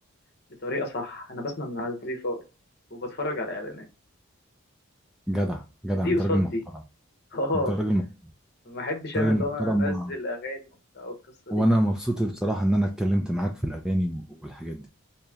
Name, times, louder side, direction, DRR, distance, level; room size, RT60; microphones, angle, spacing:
voice 1, 0.6-2.4 2.9-3.9 5.9-6.6 7.3-7.7 8.6-10.7 10.9-11.1 11.5-11.6, left 1 dB, 45° left, 0.9 m, -30 dB
voice 2, 5.3-6.5 7.7-8.0 9.1-10.1 11.5-14.9, right 1 dB, 5° right, 0.3 m, -25 dB
3.1 x 2.8 x 3.5 m
head